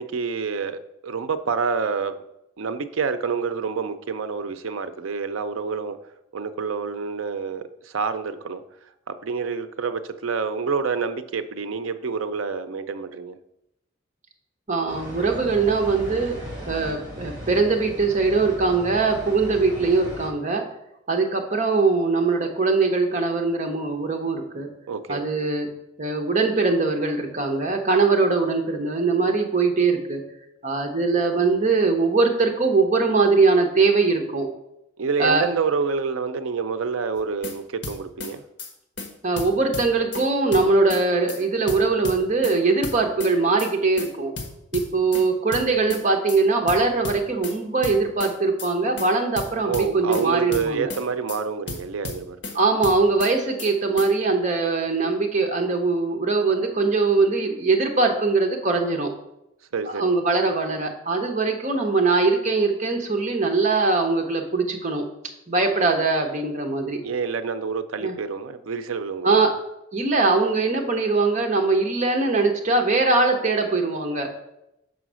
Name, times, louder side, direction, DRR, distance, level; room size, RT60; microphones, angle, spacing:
voice 1, 0.0-2.1 2.6-6.0 6.3-8.6 9.1-13.4 24.9-25.2 35.0-38.4 49.6-52.4 59.7-60.1 67.0-69.5, right 5 dB, 85° right, 10 dB, 0.5 m, -28 dB
voice 2, 14.7-16.3 16.7-20.6 21.1-24.7 25.1-25.7 26.0-30.2 30.6-34.5 35.2-35.5 39.2-44.3 44.7-50.9 52.5-59.1 59.9-65.0 65.5-67.0 68.0-68.1 69.2-69.5 69.9-74.3, right 3 dB, 35° right, 4 dB, 1.0 m, -21 dB
sound 1, 14.9-20.3, equal, 5° right, 2.5 m, -37 dB
sound 2, 37.2-37.5 37.8-38.3 38.6-38.7 39.0-39.1 39.4-40.2 40.5-41.0 41.3-41.4 41.7-42.6 42.8-43.3 43.6-43.7 44.0-44.1 44.4-45.2 45.5-46.0 46.3-46.4 46.7-47.5 47.8-48.3 48.6-48.7 49.0-49.1 49.4-50.2 50.5-51.0 51.3-51.4 51.7-52.5 52.8-53.3 53.6-53.7 54.0-54.1, left 3 dB, 65° left, 1.2 m, -33 dB
6.2 x 4.0 x 6.2 m, 0.84 s
head